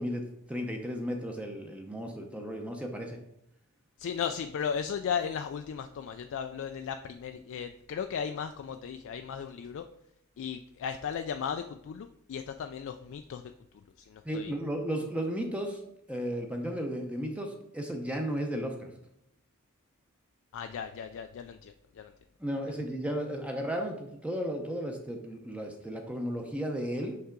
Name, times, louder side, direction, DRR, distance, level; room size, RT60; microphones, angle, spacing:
voice 1, 0.0-3.2 14.2-15.8 16.1-18.9 22.4-27.2, equal, 5° right, 3 dB, 0.6 m, -34 dB
voice 2, 4.0-9.8 10.4-13.4 14.0-14.5 20.5-22.1, left 7 dB, 60° left, 7 dB, 0.3 m, -36 dB
5.6 x 5.5 x 3.8 m, 0.77 s
head